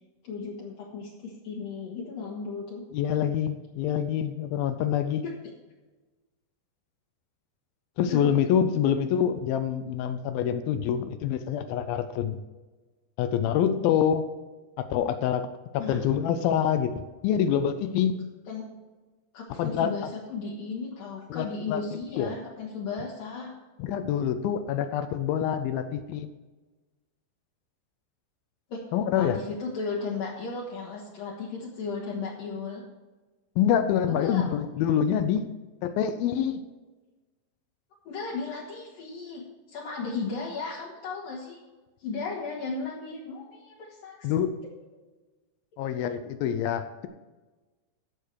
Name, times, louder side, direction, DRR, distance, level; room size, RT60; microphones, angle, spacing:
voice 1, 0.2-2.8 5.2-5.3 8.1-8.2 15.8-16.0 18.5-18.6 19.3-23.5 28.7-28.8 29.1-32.8 34.1-34.5 38.1-41.6 42.0-44.3, left 4 dB, 65° left, -4 dB, 3.0 m, -35 dB
voice 2, 2.9-5.2 8.0-12.4 13.2-14.3 14.8-15.5 15.9-18.3 19.6-20.1 21.3-21.8 22.2-22.4 23.8-26.3 28.9-29.4 33.6-35.5 35.8-36.6 44.2-44.6 45.8-47.1, left 9 dB, 80° left, 10 dB, 2.2 m, -26 dB
14.5 x 6.8 x 4.6 m, 1.2 s
omnidirectional pair, 4.9 m